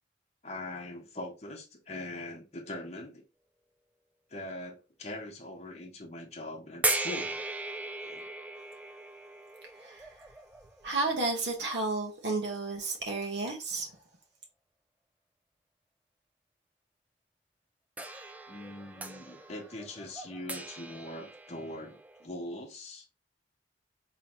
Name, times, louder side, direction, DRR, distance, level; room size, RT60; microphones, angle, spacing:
voice 1, 0.4-3.2 4.3-7.4 8.0-8.3 18.5-23.1, left 1 dB, 35° left, 0.9 m, -42 dB
sound 1, 6.8-11.9 12.7-12.8 18.0-22.3, right 2 dB, 10° right, 0.3 m, -38 dB
voice 2, 9.8-10.1 10.8-13.9, right 3 dB, 65° right, 1.2 m, -32 dB
3.8 x 3.1 x 3.0 m
head